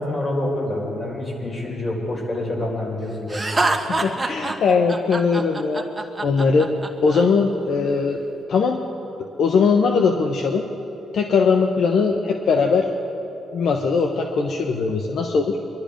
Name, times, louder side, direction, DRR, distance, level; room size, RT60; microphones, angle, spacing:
voice 1, 0.0-3.4, left 1 dB, 30° left, -1 dB, 4.3 m, -27 dB
Laughter, 3.3-7.2, right 2 dB, 15° right, 1.2 m, -25 dB
voice 2, 3.5-5.9 6.2-6.7 7.0-8.2 8.5-8.8 9.4-10.6 11.1-12.9 13.5-15.6, left 5 dB, 65° left, 3 dB, 0.9 m, -20 dB
23.5 x 12.0 x 5.1 m, 3.0 s
cardioid pair, 90°, 0 cm